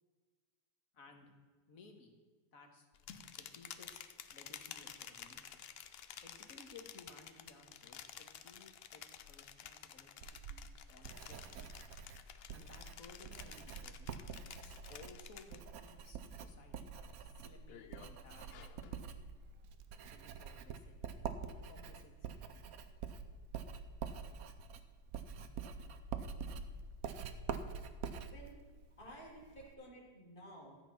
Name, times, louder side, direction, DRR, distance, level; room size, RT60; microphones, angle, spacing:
voice 1, 0.9-1.3 1.7-2.2 2.5-4.0 4.3-5.7 6.2-11.8 12.5-19.1 20.1-21.1 21.5-22.6, left 3 dB, 55° left, 3 dB, 1.9 m, -59 dB
sound 1, 2.9-15.9 16.3-16.7 17.1-19.0, left 8 dB, 75° left, 0.5 m, -53 dB
Writing, 10.2-29.7, right 6 dB, 65° right, 1.1 m, -46 dB
voice 2, 28.2-28.6 29.0-30.8, equal, 30° left, -3 dB, 2.9 m, -53 dB
13.5 x 8.1 x 5.9 m, 1.4 s
omnidirectional pair, 1.8 m